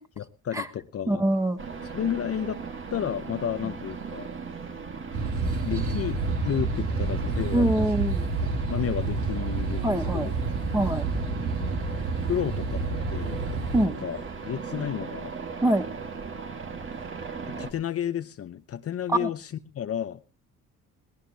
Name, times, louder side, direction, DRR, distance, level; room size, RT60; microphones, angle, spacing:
voice 1, 0.2-1.2 1.8-2.6 2.9-4.3 5.6-7.9 8.7-10.3 11.7-12.8 13.1-13.4 14.0-15.3 17.6-20.2, left 9 dB, 50° left, 0.8 m, -32 dB
voice 2, 1.1-1.6 7.5-8.3 9.8-10.3 10.7-11.1 13.7-13.9 15.6-15.8 19.2-19.3, right 1 dB, 10° right, 1.4 m, -24 dB
sound 1, 1.6-17.7, right 5 dB, 40° right, 1.9 m, -38 dB
sound 2, 5.1-13.9, right 3 dB, 80° right, 3.2 m, -29 dB
21.0 x 17.5 x 2.8 m
cardioid pair, 90°, 30 cm